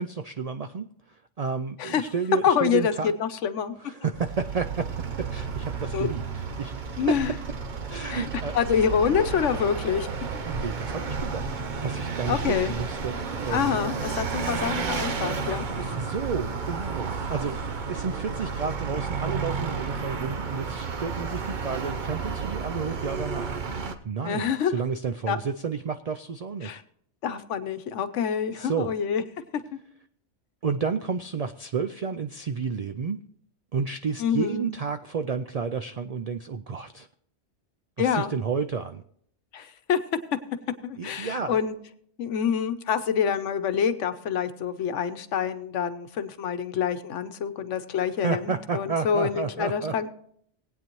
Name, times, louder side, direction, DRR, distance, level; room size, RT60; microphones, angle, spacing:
voice 1, 0.0-3.1 3.8-4.9 5.2-6.2 6.6-7.2 7.9-8.5 10.5-11.5 11.8-13.9 15.8-17.5 17.9-23.6 24.0-26.8 28.5-28.9 30.6-33.2 33.7-37.1 38.0-39.0 41.0-41.6 48.2-50.1, right 5 dB, 75° right, 8 dB, 0.3 m, -31 dB
voice 2, 2.4-3.7 5.9-6.1 7.0-7.3 8.1-8.3 8.5-10.1 10.3-10.4 12.3-12.7 13.5-15.9 24.2-24.7 25.3-25.4 26.6-26.8 27.2-29.2 34.2-34.7 38.0-38.3 39.5-40.0 40.8-41.7 42.2-50.1, left 7 dB, 80° left, 11 dB, 1.1 m, -26 dB
Vehicle, 4.1-23.9, right 5 dB, 45° right, 0.8 m, -32 dB
19.5 x 8.9 x 3.0 m, 0.66 s
omnidirectional pair, 1.2 m